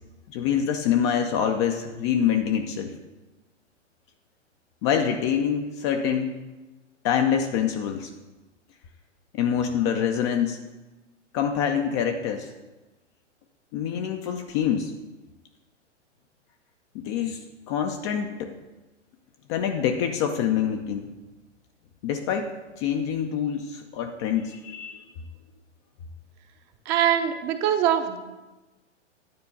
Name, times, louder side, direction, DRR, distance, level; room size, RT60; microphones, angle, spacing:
voice 1, 0.3-2.9 4.8-6.4 7.0-8.1 9.3-10.6 11.3-12.5 13.7-14.9 16.9-18.5 19.5-21.1 22.0-22.5 22.8-25.0, left 8 dB, 25° left, 5 dB, 0.4 m, -25 dB
voice 2, 26.9-28.2, right 10 dB, 25° right, 7 dB, 0.7 m, -23 dB
9.5 x 4.3 x 6.9 m, 1.1 s
figure-of-eight pair, 110°, 36 cm